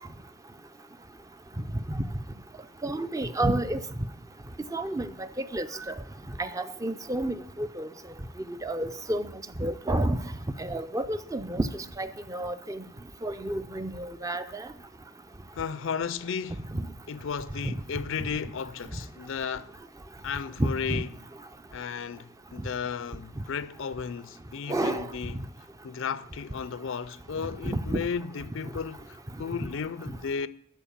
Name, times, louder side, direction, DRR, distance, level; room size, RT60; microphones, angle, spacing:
voice 1, 2.8-3.8 4.7-6.0 6.4-7.9 8.6-9.3 9.6-10.2 10.6-12.8 13.2-14.7 16.7-16.9 17.6-17.7 20.6-21.0 24.7-25.1 27.6-28.0, right 1 dB, 15° right, 0.4 m, -30 dB
voice 2, 15.5-16.7 17.1-19.7 20.2-21.1 21.7-25.4 25.8-30.5, left 6 dB, 60° left, 0.4 m, -34 dB
12.5 x 4.6 x 8.6 m
head